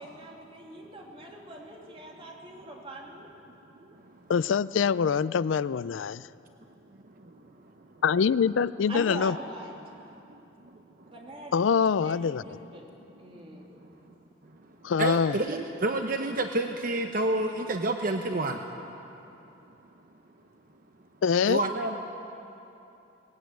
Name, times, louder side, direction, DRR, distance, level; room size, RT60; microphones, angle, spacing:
voice 1, 0.0-3.3 8.9-9.7 11.1-11.5 12.0-12.9 13.2-13.7, right 1 dB, 30° right, -1 dB, 3.1 m, -42 dB
voice 2, 4.3-6.2 8.0-9.4 11.5-12.4 14.8-15.4 21.2-21.6, left 6 dB, 90° left, 18 dB, 0.4 m, -24 dB
voice 3, 10.3-10.8 15.0-18.6 21.5-22.0, right 2 dB, 50° right, 5 dB, 0.9 m, -29 dB
20.0 x 16.5 x 9.3 m, 2.9 s
head